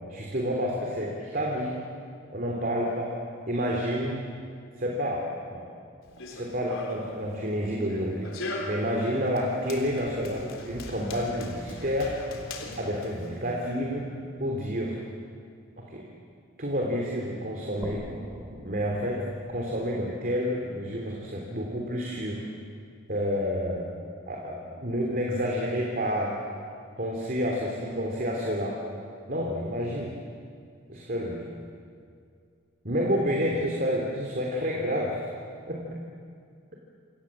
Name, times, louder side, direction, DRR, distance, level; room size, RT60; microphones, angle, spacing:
voice 1, 0.1-1.7 2.3-3.1 3.5-4.2 4.8-5.7 6.3-12.2 12.8-14.1 14.4-15.0 15.8-16.0 16.6-18.0 18.6-22.4 23.1-23.9 24.3-26.4 27.0-28.8 29.3-30.1 30.9-31.5 32.8-35.2 35.7-36.0, equal, 45° right, -1 dB, 3.3 m, -29 dB
Run, 6.0-13.7, left 2 dB, 80° left, 3.8 m, -40 dB
sound 1, 17.8-21.3, equal, 15° right, 2.9 m, -43 dB
29.0 x 26.5 x 7.6 m, 2.3 s
head